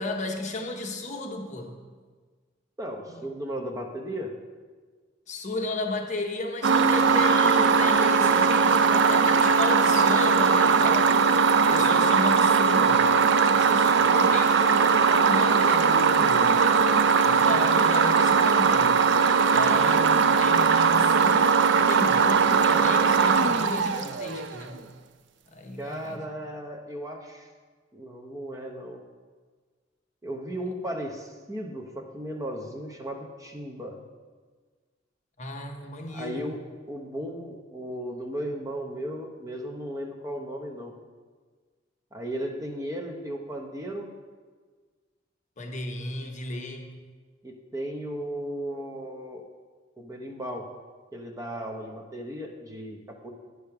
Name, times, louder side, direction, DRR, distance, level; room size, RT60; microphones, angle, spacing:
voice 1, 0.0-1.8 3.1-3.3 5.3-11.2 11.7-16.6 17.2-19.0 19.5-24.8 25.5-26.3 35.4-36.4 45.6-46.9, left 2 dB, 40° left, 3 dB, 0.9 m, -34 dB
voice 2, 2.8-4.3 25.8-27.5 27.9-29.0 30.2-34.0 36.1-36.6 36.9-40.9 42.1-44.1 47.4-49.4 50.0-50.7 51.1-53.3, equal, 15° right, 2 dB, 0.8 m, -35 dB
sound 1, 6.6-24.6, right 5 dB, 65° right, 0.4 m, -20 dB
9.4 x 5.1 x 5.8 m, 1.5 s
head